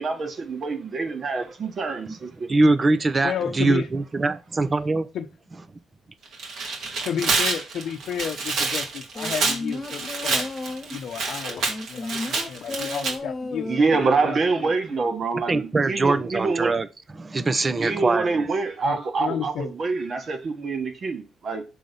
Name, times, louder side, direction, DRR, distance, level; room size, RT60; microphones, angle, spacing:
voice 1, 0.0-2.5 13.6-16.7 17.8-21.6, right 4 dB, 45° right, 1.6 m, -26 dB
voice 2, 2.5-5.1 15.5-18.4, right 3 dB, 30° right, 0.7 m, -23 dB
voice 3, 3.2-3.9 5.1-5.3 7.0-10.5 10.9-14.7 18.8-19.7, left 8 dB, 70° left, 0.7 m, -32 dB
Tearing, 6.3-13.1, right 4 dB, 70° right, 1.9 m, -27 dB
sound 1, 9.2-11.1 11.7-14.1 14.4-14.5, left 3 dB, 30° left, 1.4 m, -33 dB
6.3 x 3.9 x 5.3 m
cardioid pair, 90°, 0 cm